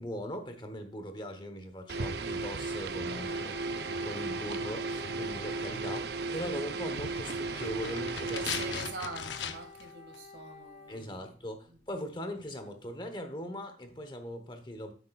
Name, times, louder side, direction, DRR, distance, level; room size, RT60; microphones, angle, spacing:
voice 1, 0.0-8.5 10.9-14.9, equal, 25° left, 1.0 m, -40 dB
sound 1, 1.9-9.0, right 3 dB, 65° right, 0.6 m, -35 dB
Wind instrument woodwind instrument, 3.1-11.1, left 4 dB, 45° left, 2.4 m, -50 dB
sound 2, 7.0-9.9 10.1-10.2, left 7 dB, 85° left, 0.7 m, -39 dB
voice 2, 8.3-11.1, right 3 dB, 80° right, 1.9 m, -43 dB
9.4 x 8.2 x 2.4 m
head